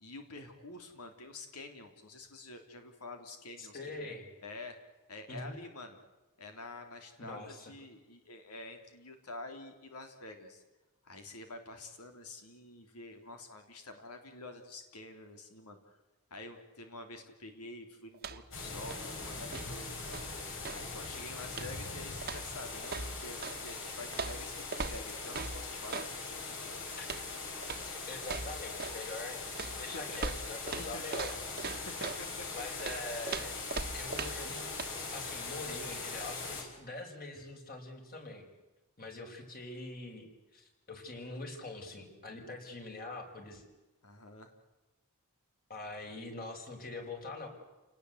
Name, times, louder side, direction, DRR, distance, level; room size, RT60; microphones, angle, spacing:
voice 1, 0.0-4.1 4.4-4.8 5.1-6.0 6.4-10.6 11.0-16.0 16.3-20.3 20.7-26.9 29.9-31.0 31.8-32.6 33.3-33.4 37.3-37.4 44.0-44.5, left 2 dB, 85° left, 6 dB, 3.5 m, -48 dB
voice 2, 3.6-4.2 5.3-5.5 7.2-7.7 27.0-27.1 28.1-31.4 32.5-33.6 33.9-34.8 35.1-38.5 39.0-43.6 45.7-47.5, left 2 dB, 40° left, 3 dB, 5.5 m, -44 dB
sound 1, 18.1-18.6 18.8-20.9 21.5-21.9 22.2-23.6 24.1-26.1 27.0-27.3 27.6-27.9 28.2-29.0 29.6-32.2 32.8-34.5 34.8-34.9, right 4 dB, 45° right, 1.3 m, -40 dB
sound 2, 18.5-36.6, left 4 dB, 60° left, 6.2 m, -41 dB
29.5 x 19.5 x 8.1 m, 1.1 s
head